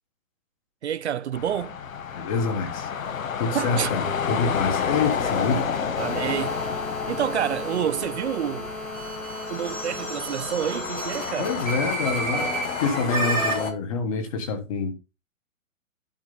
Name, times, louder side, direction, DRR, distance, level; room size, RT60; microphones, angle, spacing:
voice 1, 0.8-1.8 3.5-3.9 6.0-6.6 7.1-8.7 9.5-11.5, right 9 dB, 55° right, 0.7 m, -28 dB
sound 1, 1.3-13.7, left 7 dB, 85° left, 1.5 m, -30 dB
voice 2, 2.2-2.9 3.4-5.7 11.4-12.5 12.8-14.9, left 4 dB, 25° left, 1.4 m, -26 dB
sound 2, 4.2-13.7, right 2 dB, 5° left, 0.6 m, -32 dB
11.5 x 4.6 x 3.9 m
hypercardioid pair, 175°, 40 cm